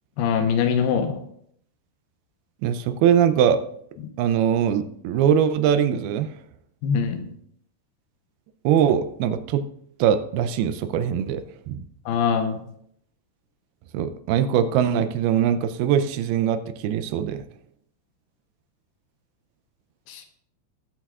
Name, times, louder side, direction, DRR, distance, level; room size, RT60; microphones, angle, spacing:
voice 1, 0.2-1.2 6.8-7.3 12.1-12.6 20.1-20.3, left 7 dB, 80° left, 6 dB, 2.9 m, -23 dB
voice 2, 2.6-3.6 4.2-6.3 8.6-9.6 10.0-11.8 13.9-17.4, right 9 dB, 85° right, 11 dB, 2.5 m, -22 dB
18.5 x 8.1 x 2.4 m, 0.67 s
omnidirectional pair, 4.5 m